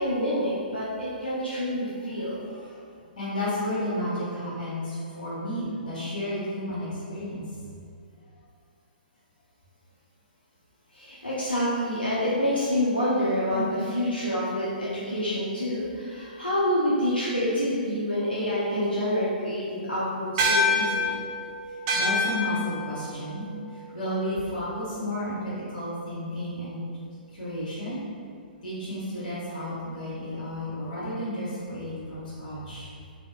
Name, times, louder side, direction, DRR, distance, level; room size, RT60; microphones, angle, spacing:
voice 1, 0.0-2.4 10.9-21.2, equal, 85° left, -9 dB, 0.4 m, -27 dB
voice 2, 3.2-7.4 13.5-13.7 21.9-23.5 23.7-26.8 27.3-28.0 28.6-32.9, left 1 dB, 55° left, -9 dB, 1.1 m, -32 dB
sound 1, 20.4-25.1, left 2 dB, 30° right, 0.3 m, -28 dB
2.6 x 2.0 x 2.3 m, 2.3 s
figure-of-eight pair, 120°, 5 cm